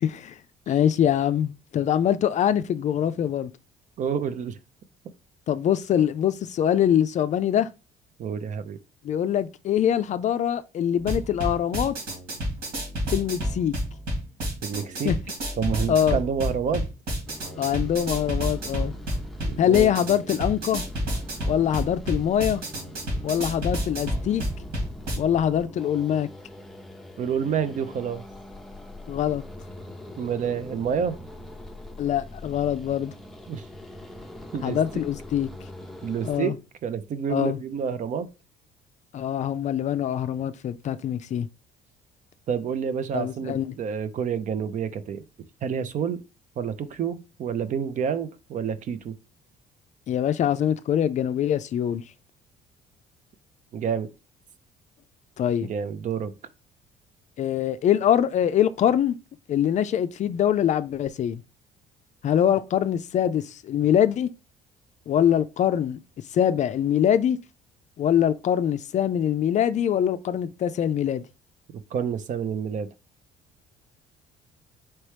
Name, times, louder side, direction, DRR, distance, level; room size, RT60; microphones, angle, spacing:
voice 1, 0.0-0.4 0.7-3.5 5.5-7.7 9.0-12.0 13.1-13.7 15.0-15.2 15.9-16.2 17.6-18.9 19.6-20.8 21.5-22.6 23.2-24.4 25.2-26.3 29.1-29.4 32.0-33.1 34.6-35.5 36.2-36.6 37.3-37.6 39.1-41.5 43.1-43.8 50.1-52.0 55.4-55.7 57.4-59.2 59.5-61.4 62.2-64.3 65.1-66.0 66.3-67.4 68.0-71.3, left 10 dB, 45° left, 0.4 m, -23 dB
voice 2, 4.0-4.6 8.2-8.8 14.6-15.1 15.6-16.8 19.4-19.9 27.2-28.2 30.2-31.2 33.5-33.6 34.5-35.0 36.0-36.5 36.8-38.3 42.5-45.2 45.6-46.2 46.6-49.1 53.7-54.1 55.6-56.3 71.9-72.9, right 7 dB, 50° right, 0.5 m, -28 dB
sound 1, 11.0-25.2, equal, 70° right, 2.4 m, -30 dB
sound 2, 17.3-36.4, left 1 dB, ahead, 0.6 m, -42 dB
4.4 x 3.0 x 3.3 m
cardioid pair, 110°, 17 cm